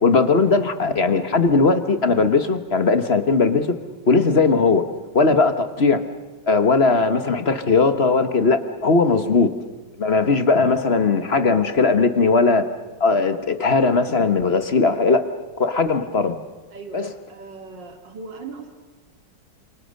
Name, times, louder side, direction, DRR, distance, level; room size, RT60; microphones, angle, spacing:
voice 1, 0.0-3.8 4.1-4.9 5.1-6.0 6.5-9.5 10.0-12.7 13.0-15.3 15.6-16.4 16.9-17.1, left 4 dB, 40° left, 9 dB, 1.4 m, -18 dB
voice 2, 16.7-18.7, right 4 dB, 85° right, 4 dB, 3.0 m, -38 dB
29.5 x 27.0 x 6.6 m, 1.3 s
omnidirectional pair, 1.9 m